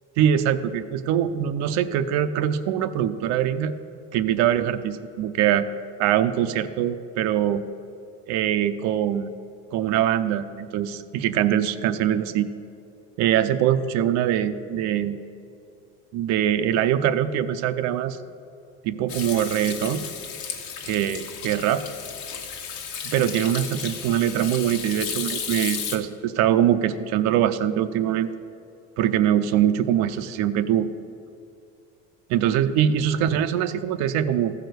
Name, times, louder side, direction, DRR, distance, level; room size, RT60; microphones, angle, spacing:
voice 1, 0.2-3.7 4.1-5.7 6.0-7.6 8.3-9.3 9.7-12.5 13.2-15.2 16.1-18.2 18.8-20.1 20.8-21.8 23.0-28.3 29.0-30.9 32.3-34.5, right 10 dB, 65° right, 10 dB, 0.6 m, -23 dB
Hands / Sink (filling or washing), 19.1-26.0, left 7 dB, 65° left, 1.3 m, -34 dB
14.0 x 4.8 x 7.9 m, 2.6 s
cardioid pair, 135°, 30 cm